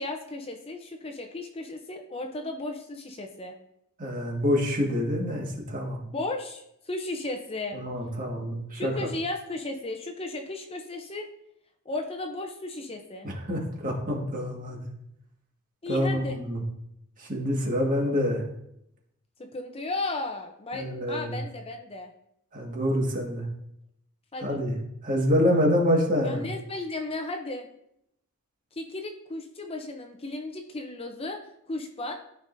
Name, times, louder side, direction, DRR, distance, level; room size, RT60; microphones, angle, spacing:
voice 1, 0.0-3.5 6.0-7.8 8.7-11.3 11.9-13.3 15.8-16.4 19.4-22.1 24.3-24.6 26.2-27.7 28.7-31.4 31.7-32.1, left 2 dB, 25° left, 4 dB, 0.6 m, -35 dB
voice 2, 4.0-6.0 7.7-8.9 13.2-14.9 15.9-16.6 17.2-18.4 20.7-21.4 22.5-23.5 24.4-24.8 25.0-26.5, equal, 40° right, 0 dB, 1.8 m, -26 dB
13.0 x 5.3 x 2.7 m, 0.78 s
head